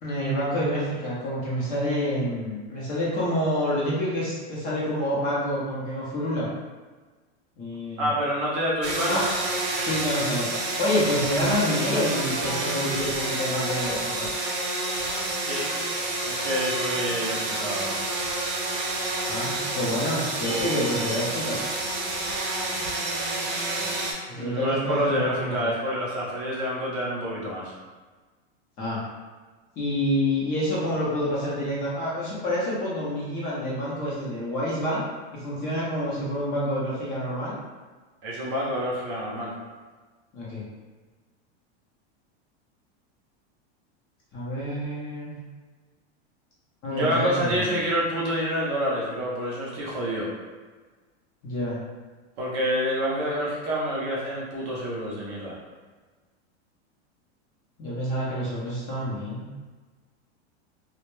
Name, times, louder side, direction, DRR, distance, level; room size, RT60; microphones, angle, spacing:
voice 1, 0.0-6.5 7.6-8.1 9.1-9.2 9.8-10.5 10.8-14.3 19.3-21.6 24.3-25.7 28.8-29.0 29.8-35.0 35.3-37.5 40.3-40.6 44.3-45.4 46.8-47.8 51.4-51.8 57.8-59.5, equal, 25° left, -7 dB, 0.6 m, -28 dB
voice 2, 8.0-9.2 15.4-15.6 16.2-18.0 24.3-27.7 38.2-39.5 46.9-50.3 52.4-55.6, equal, 35° right, -4 dB, 0.5 m, -28 dB
sound 1, 8.8-24.1, right 2 dB, 75° right, 0.8 m, -29 dB
2.2 x 2.1 x 3.0 m, 1.3 s
supercardioid pair, 155°, 34 cm